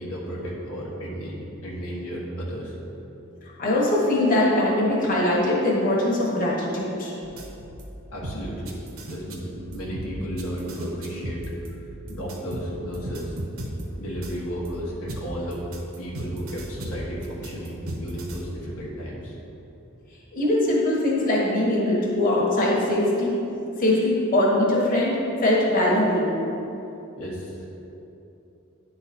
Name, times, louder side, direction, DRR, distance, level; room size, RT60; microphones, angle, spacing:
voice 1, 0.0-2.8 8.1-8.8 9.1-11.4 12.1-13.4 14.0-15.7 16.0-19.3 27.2-27.7, equal, 90° left, -4 dB, 1.3 m, -33 dB
voice 2, 3.6-7.1 20.3-23.3 23.8-26.3, left 1 dB, 40° left, -5 dB, 1.3 m, -22 dB
sound 1, 7.2-7.9 8.2-14.7 15.1-18.4, right 1 dB, 70° right, 1.0 m, -36 dB
9.5 x 4.0 x 4.3 m, 2.9 s
head